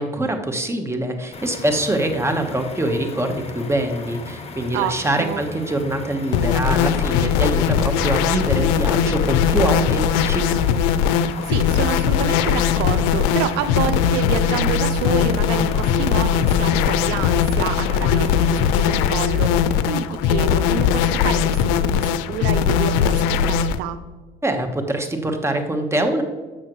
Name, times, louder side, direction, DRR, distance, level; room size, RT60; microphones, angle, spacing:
voice 1, 0.0-10.6 24.4-26.2, right 1 dB, 15° right, 5 dB, 1.2 m, -24 dB
sound 1, 1.3-18.9, left 4 dB, 35° left, 1.0 m, -37 dB
voice 2, 4.7-5.4 11.5-24.0, right 8 dB, 80° right, 11 dB, 0.4 m, -28 dB
sound 2, 6.3-23.8, left 8 dB, 85° left, 0.4 m, -19 dB
7.4 x 6.4 x 3.1 m, 1.3 s
supercardioid pair, 75°, 19 cm